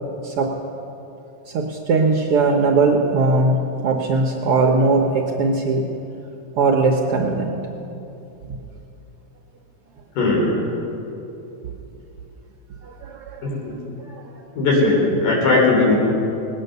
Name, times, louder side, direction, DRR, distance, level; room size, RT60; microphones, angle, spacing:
voice 1, 0.2-0.6 1.5-5.9 6.6-7.7 12.8-14.4, right 3 dB, 70° right, 2 dB, 1.3 m, -20 dB
voice 2, 10.2-10.5 13.4-13.7 14.5-15.9, left 3 dB, 85° left, -3 dB, 5.1 m, -18 dB
19.5 x 9.4 x 6.7 m, 2.9 s
omnidirectional pair, 3.7 m